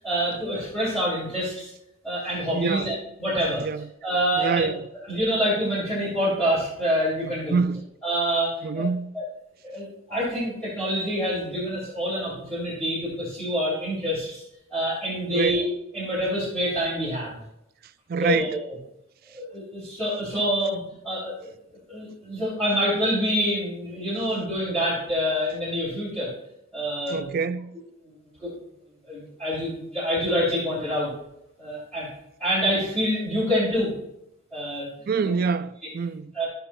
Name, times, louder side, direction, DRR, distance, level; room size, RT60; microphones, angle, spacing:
voice 1, 0.0-1.7 2.0-3.6 4.0-4.7 5.1-7.6 8.0-8.8 9.1-9.2 9.6-14.4 14.7-15.7 15.9-17.4 18.2-18.7 19.3-20.8 21.0-21.5 21.9-26.3 26.7-27.3 28.0-28.1 28.4-28.5 29.0-31.1 31.6-32.1 32.4-33.9 34.5-34.9 35.2-35.3 36.3-36.5, equal, 5° left, 2.8 m, -26 dB
voice 2, 2.5-2.9 3.6-3.8 4.4-4.8 7.5-7.8 8.6-9.1 15.3-15.6 18.1-18.6 27.1-27.8 35.1-36.3, right 5 dB, 45° right, 0.4 m, -26 dB
14.5 x 5.6 x 2.2 m
head